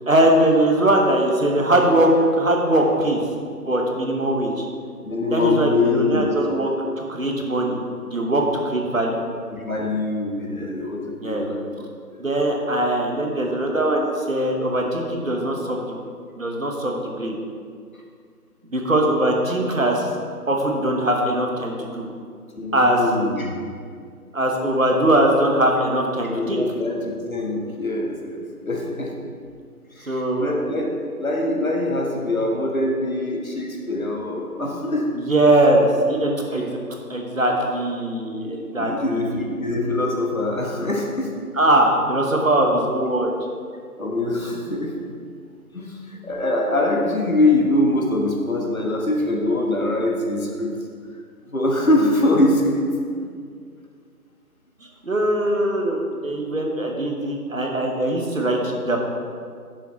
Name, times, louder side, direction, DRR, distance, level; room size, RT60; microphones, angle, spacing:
voice 1, 0.1-3.2 3.6-4.7 5.3-6.7 7.0-7.8 8.0-9.2 11.2-11.4 12.2-15.8 16.4-17.4 18.7-20.1 20.5-22.1 22.7-23.0 24.3-26.6 30.1-30.5 35.3-36.8 37.1-39.5 41.5-43.3 55.0-59.0, right 1 dB, 55° right, 1 dB, 1.2 m, -21 dB
voice 2, 5.0-6.3 9.5-11.8 12.1-12.2 22.6-23.5 26.2-29.1 30.0-30.9 31.2-35.2 36.5-36.7 38.4-41.3 44.0-44.9 45.7-50.8 51.5-52.9, left 2 dB, 60° left, 0 dB, 1.4 m, -23 dB
10.0 x 6.9 x 3.1 m, 2.1 s
figure-of-eight pair, 175°, 47 cm